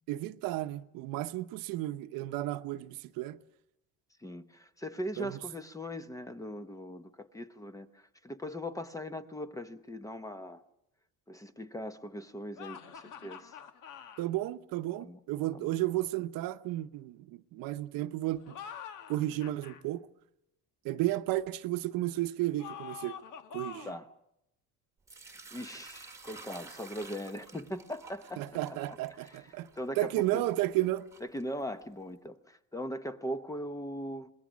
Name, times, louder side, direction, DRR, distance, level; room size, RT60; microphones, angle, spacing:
voice 1, 0.1-3.4 5.2-5.4 14.2-18.6 19.1-20.1 20.8-23.2 23.5-23.9 28.4-29.7 30.0-31.1, right 16 dB, 80° right, 0.9 m, -33 dB
voice 2, 4.2-10.6 11.3-13.6 15.0-15.2 15.5-15.7 23.8-24.1 25.5-28.4 29.2-29.5 29.8-30.4 31.3-34.3, equal, 10° left, 0.8 m, -40 dB
sound 1, 12.6-14.3 18.4-19.8 22.6-24.1, left 8 dB, 65° left, 1.5 m, -46 dB
Sink (filling or washing) / Liquid, 25.1-32.0, right 4 dB, 10° right, 1.5 m, -52 dB
27.0 x 21.0 x 6.2 m
cardioid pair, 155°, 34 cm